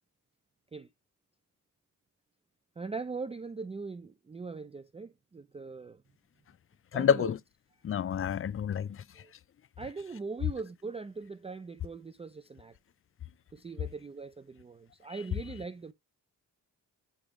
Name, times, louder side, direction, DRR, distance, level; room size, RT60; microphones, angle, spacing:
voice 1, 2.8-6.0 6.9-7.3 9.2-9.3 9.8-12.8 13.5-15.9, right 4 dB, 20° right, 0.4 m, -41 dB
voice 2, 6.9-7.4 7.8-9.2, left 8 dB, 40° left, 0.4 m, -29 dB
8.8 x 3.4 x 3.6 m
cardioid pair, 80°, 34 cm